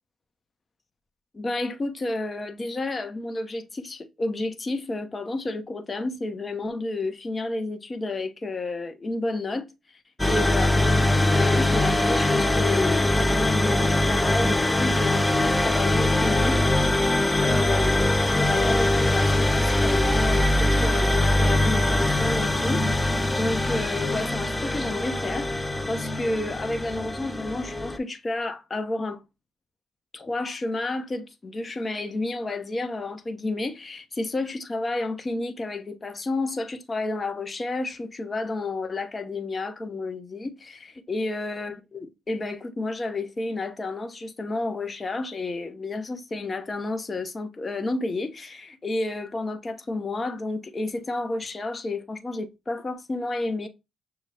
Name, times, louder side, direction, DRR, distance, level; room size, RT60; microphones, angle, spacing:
voice 1, 1.3-9.7 10.3-16.7 17.4-18.0 18.4-29.2 30.1-53.7, left 2 dB, 35° left, 0.9 m, -31 dB
sound 1, 10.2-28.0, left 1 dB, 10° left, 0.5 m, -22 dB
6.6 x 2.3 x 3.3 m
supercardioid pair, 65°, 0 cm